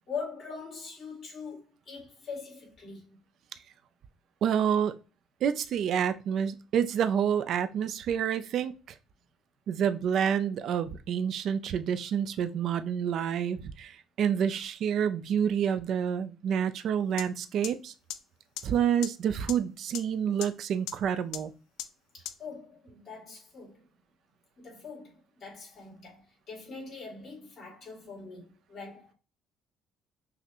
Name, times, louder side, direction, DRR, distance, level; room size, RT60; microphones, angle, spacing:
voice 1, 0.1-3.2 22.1-23.8 24.6-29.1, left 5 dB, 45° left, 2.1 m, -42 dB
voice 2, 4.4-5.0 5.4-8.7 9.7-17.9 18.6-21.5, right 8 dB, 55° right, 0.3 m, -28 dB
sound 1, 17.2-17.3 17.6-17.7 18.1-18.2 18.6-18.7 19.0-19.1 19.5-19.6 19.9-20.0 20.4-20.5 20.9-21.0 21.3-21.4 21.8-21.9 22.2-22.3, left 12 dB, 90° left, 0.4 m, -35 dB
5.9 x 2.1 x 2.8 m
cardioid pair, 135°, 0 cm